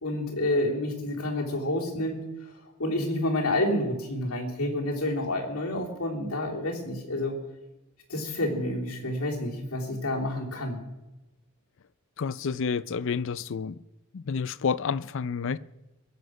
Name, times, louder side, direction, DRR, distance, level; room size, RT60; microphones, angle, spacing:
voice 1, 0.0-2.5 2.8-7.3 8.1-10.8, left 1 dB, 75° left, 3.3 m, -29 dB
voice 2, 12.2-13.8 14.1-15.6, left 6 dB, 60° left, 0.5 m, -29 dB
21.0 x 7.9 x 6.3 m
head